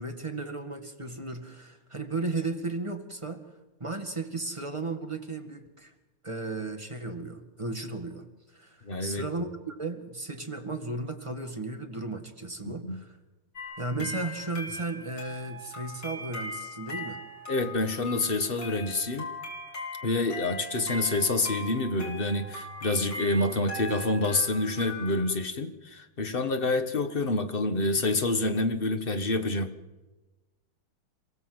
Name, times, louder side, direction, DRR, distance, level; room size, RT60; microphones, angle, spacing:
voice 1, 0.0-3.4 3.8-5.9 6.2-8.2 8.5-13.2 13.8-17.2, right 3 dB, 15° right, 5 dB, 1.7 m, -35 dB
voice 2, 8.8-9.3 12.6-13.0 17.5-19.3 20.0-29.7, left 2 dB, 30° left, 8 dB, 1.3 m, -27 dB
sound 1, 13.6-25.3, left 1 dB, 55° left, 5.0 m, -40 dB
27.5 x 17.0 x 8.0 m, 1.2 s
omnidirectional pair, 2.3 m